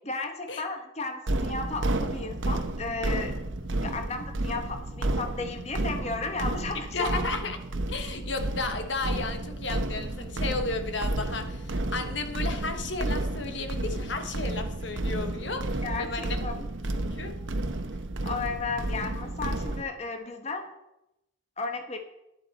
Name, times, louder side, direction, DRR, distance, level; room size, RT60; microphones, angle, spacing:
voice 1, 0.0-3.4 3.8-7.2 15.8-16.5 18.2-20.7 21.6-22.0, left 3 dB, 35° left, 5 dB, 1.1 m, -34 dB
sound 1, 1.3-19.8, right 1 dB, 75° right, 1.0 m, -31 dB
voice 2, 6.9-7.6 7.9-16.4 17.1-17.4, left 3 dB, 65° left, 7 dB, 1.2 m, -33 dB
12.0 x 11.0 x 4.1 m, 0.88 s
head